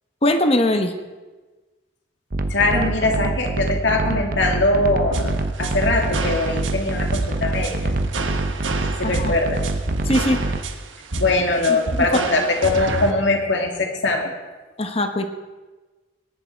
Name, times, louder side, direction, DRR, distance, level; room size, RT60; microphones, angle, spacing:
voice 1, 0.2-0.9 9.2-9.3 10.1-10.4 14.8-15.2, left 1 dB, 30° left, 7 dB, 1.2 m, -20 dB
sound 1, 2.3-10.6, right 2 dB, 50° right, 0.9 m, -25 dB
voice 2, 2.5-7.9 9.0-9.6 11.1-14.3, left 2 dB, 70° left, 2 dB, 2.5 m, -21 dB
sound 2, 5.1-13.1, right 2 dB, 90° right, 1.3 m, -29 dB
20.0 x 11.0 x 4.7 m, 1.2 s
head